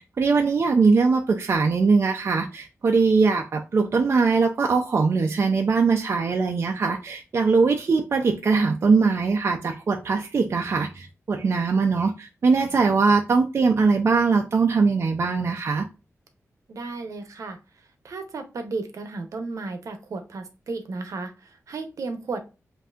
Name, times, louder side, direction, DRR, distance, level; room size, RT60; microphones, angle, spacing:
voice 1, 0.0-15.8, right 4 dB, 50° right, 0.5 m, -21 dB
voice 2, 16.7-17.6 18.0-22.4, right 3 dB, 75° right, 0.8 m, -34 dB
7.8 x 2.7 x 2.4 m
wide cardioid pair, 175°, 6 cm